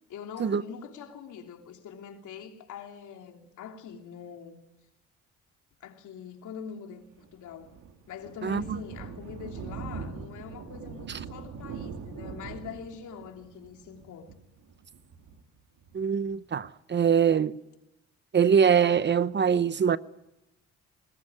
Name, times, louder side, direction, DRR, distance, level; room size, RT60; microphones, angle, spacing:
voice 1, 0.1-4.6 5.8-7.0 7.3-7.7 8.1-14.3, left 7 dB, 75° left, 3.2 m, -43 dB
Thunder, 7.2-16.3, right 5 dB, 75° right, 3.0 m, -42 dB
voice 2, 8.4-8.8 15.9-17.6 18.3-20.0, right 7 dB, 35° right, 0.8 m, -23 dB
20.5 x 20.0 x 9.8 m
cardioid pair, 90°, 30 cm